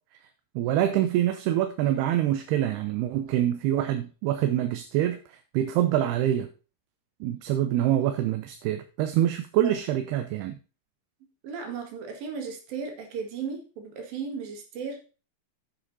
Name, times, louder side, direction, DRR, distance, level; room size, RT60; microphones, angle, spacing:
voice 1, 0.6-6.5 7.2-10.6, right 12 dB, 80° right, 8 dB, 2.6 m, -25 dB
voice 2, 11.4-15.0, right 5 dB, 60° right, 3 dB, 3.6 m, -35 dB
9.7 x 7.9 x 4.2 m, 0.35 s
omnidirectional pair, 4.8 m